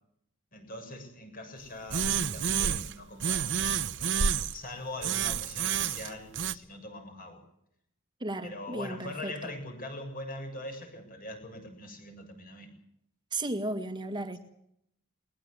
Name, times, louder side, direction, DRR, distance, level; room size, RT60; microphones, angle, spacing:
voice 1, 0.5-7.4 8.4-12.7, left 1 dB, 40° left, 7.2 m, -42 dB
sound 1, 1.9-2.9 3.2-4.6 5.0-6.5, right 7 dB, 55° right, 1.0 m, -29 dB
voice 2, 8.2-9.5 13.3-14.4, right 1 dB, 20° right, 2.0 m, -35 dB
21.5 x 20.0 x 8.0 m
head